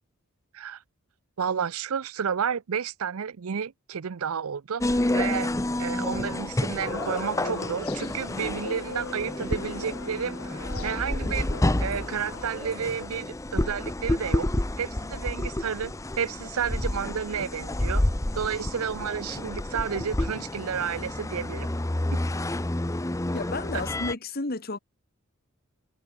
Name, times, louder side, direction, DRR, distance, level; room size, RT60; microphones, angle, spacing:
voice 1, 1.4-5.5 5.8-11.5 11.8-14.5 14.8-18.0 18.4-21.7, right 7 dB, 80° right, 0.6 m, -31 dB
sound 1, 4.8-24.1, left 1 dB, 15° left, 0.6 m, -29 dB
sound 2, 6.8-13.1, left 4 dB, 85° left, 2.7 m, -40 dB
voice 2, 23.3-24.8, left 2 dB, 45° left, 1.6 m, -32 dB
head